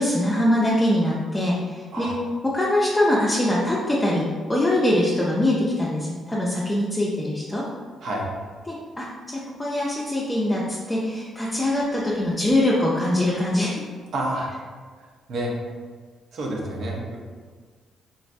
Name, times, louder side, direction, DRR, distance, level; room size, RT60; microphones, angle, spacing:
voice 1, 0.0-2.1 2.4-7.6 8.7-13.8, left 1 dB, 15° left, -6 dB, 0.5 m, -23 dB
voice 2, 14.1-14.5 15.0-15.6 16.3-17.2, right 1 dB, 65° right, -2 dB, 0.7 m, -29 dB
3.8 x 2.1 x 2.6 m, 1.5 s
supercardioid pair, 60°, 0 cm